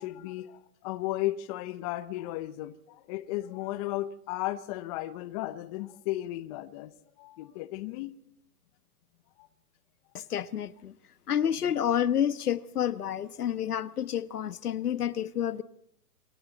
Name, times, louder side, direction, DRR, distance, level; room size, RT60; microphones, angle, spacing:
voice 1, 0.0-6.9 7.2-8.1 9.4-9.5, left 15 dB, 25° left, 0.8 m, -35 dB
voice 2, 10.1-10.9 11.3-15.6, left 9 dB, 75° left, 1.3 m, -29 dB
27.5 x 25.0 x 4.0 m
hypercardioid pair, 140°, 46 cm